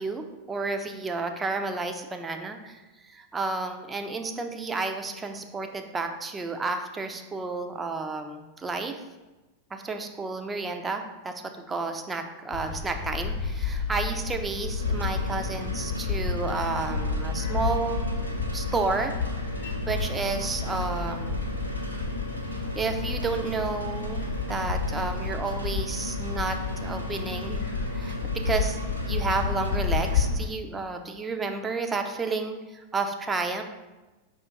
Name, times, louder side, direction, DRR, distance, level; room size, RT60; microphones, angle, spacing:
voice 1, 0.0-9.0 9.7-11.3 11.7-18.1 18.5-19.2 19.6-21.4 22.8-27.6 27.9-28.8 29.1-33.6, right 3 dB, 15° right, 6 dB, 0.4 m, -31 dB
sound 1, 12.5-30.5, left 4 dB, 45° left, 0.7 m, -31 dB
sound 2, 14.8-30.3, equal, 85° right, 0.5 m, -36 dB
4.9 x 2.4 x 3.9 m, 1.1 s
figure-of-eight pair, 90°, 0 cm